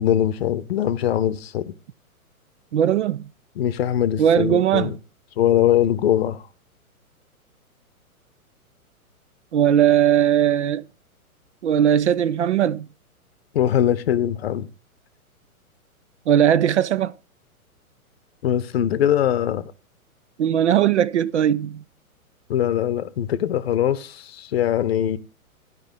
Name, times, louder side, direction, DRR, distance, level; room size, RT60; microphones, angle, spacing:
voice 1, 0.0-1.7 3.6-5.0 5.4-6.4 13.5-14.7 18.4-19.7 22.5-25.2, left 10 dB, 45° left, 0.8 m, -22 dB
voice 2, 2.7-3.2 4.2-4.9 9.5-10.8 11.6-12.9 16.3-17.1 20.4-21.8, right 10 dB, 55° right, 0.4 m, -19 dB
12.5 x 5.5 x 5.1 m
figure-of-eight pair, 115°, 43 cm